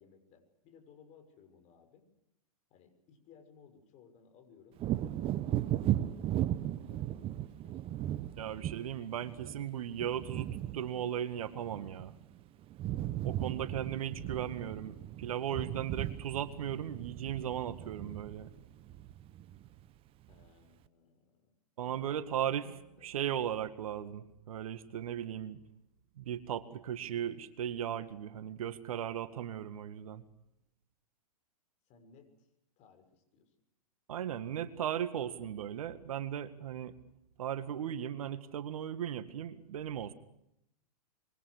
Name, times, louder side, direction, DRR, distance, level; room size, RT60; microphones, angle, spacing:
voice 1, 0.0-2.1 2.7-4.8 5.1-6.3 6.6-8.3 9.4-9.6 20.3-21.5 21.8-23.1 31.9-32.5 32.8-33.5, left 6 dB, 35° left, 7 dB, 6.5 m, -61 dB
Wind / Thunder, 4.8-12.4 12.6-19.9 20.3-20.4, right 13 dB, 30° right, 1.2 m, -37 dB
voice 2, 8.4-12.1 13.2-18.5 21.8-22.7 23.0-25.6 26.2-30.2 34.1-36.9 37.4-40.1, right 10 dB, 60° right, 12 dB, 1.9 m, -37 dB
26.5 x 23.5 x 6.5 m, 0.83 s
hypercardioid pair, 115°, 20 cm